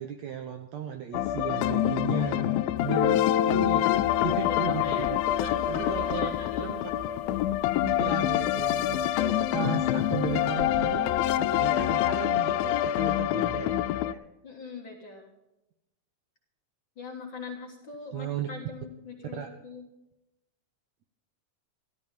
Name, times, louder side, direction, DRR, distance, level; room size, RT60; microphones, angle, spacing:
voice 1, 0.0-5.2 5.7-6.3 6.6-6.8 7.8-14.2 18.1-18.5 19.4-19.5, right 9 dB, 75° right, 6 dB, 1.7 m, -36 dB
sound 1, 1.1-14.1, left 13 dB, 90° left, 2.4 m, -26 dB
Guitar, 2.8-8.3, left 9 dB, 70° left, 2.6 m, -31 dB
Water, 3.9-11.9, left 5 dB, 5° left, 2.1 m, -50 dB
voice 2, 4.4-5.1 5.4-6.7 14.4-15.3 17.0-19.8, left 4 dB, 45° left, 1 dB, 1.9 m, -41 dB
13.5 x 13.0 x 5.3 m, 0.93 s
omnidirectional pair, 4.0 m